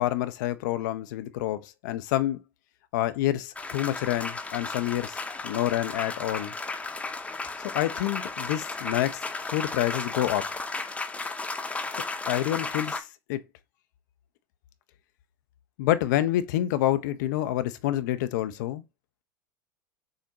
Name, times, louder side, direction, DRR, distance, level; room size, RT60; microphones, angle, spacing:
voice 1, 0.0-2.4 2.9-5.2 5.4-6.5 7.7-10.5 11.9-13.4 15.8-18.8, left 13 dB, 65° left, 0.5 m, -28 dB
sound 1, 3.6-13.0, left 3 dB, 10° left, 0.7 m, -34 dB
6.4 x 2.1 x 2.7 m
hypercardioid pair, 85°, 11 cm